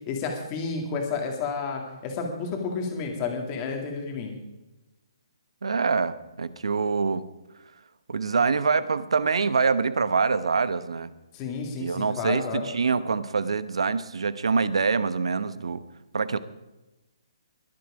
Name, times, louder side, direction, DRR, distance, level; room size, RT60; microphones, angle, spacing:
voice 1, 0.1-4.3 11.3-12.7, left 4 dB, 20° left, 2 dB, 2.1 m, -31 dB
voice 2, 5.6-7.2 8.1-11.1 11.8-15.8 16.1-16.4, right 5 dB, 85° right, 14 dB, 0.9 m, -25 dB
21.5 x 7.8 x 4.9 m, 1.0 s
hypercardioid pair, 175°, 3 cm